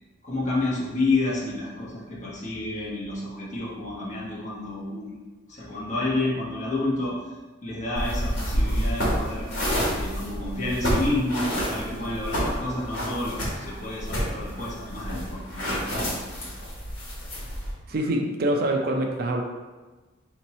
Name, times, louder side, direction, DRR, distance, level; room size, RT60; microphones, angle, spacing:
voice 1, 0.2-5.2 5.5-7.2 7.6-9.5 9.9-16.5, left 2 dB, 35° left, -6 dB, 1.0 m, -30 dB
sound 1, 7.9-17.7, equal, 60° left, 1.5 m, -29 dB
voice 2, 17.9-19.4, right 1 dB, 45° right, 3 dB, 0.4 m, -25 dB
3.4 x 2.9 x 4.1 m, 1.2 s
head